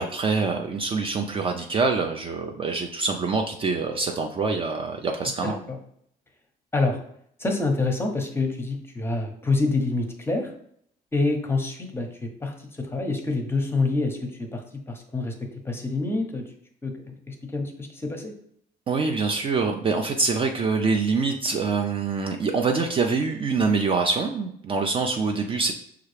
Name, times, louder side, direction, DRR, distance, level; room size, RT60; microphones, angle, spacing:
voice 1, 0.0-5.6 18.9-25.7, right 4 dB, 30° right, 3 dB, 0.4 m, -25 dB
voice 2, 5.4-5.8 6.7-7.0 7.4-10.5 11.1-16.4 16.8-18.3, left 3 dB, 15° left, 4 dB, 0.7 m, -27 dB
5.7 x 2.4 x 3.2 m, 0.67 s
cardioid pair, 110°, 17 cm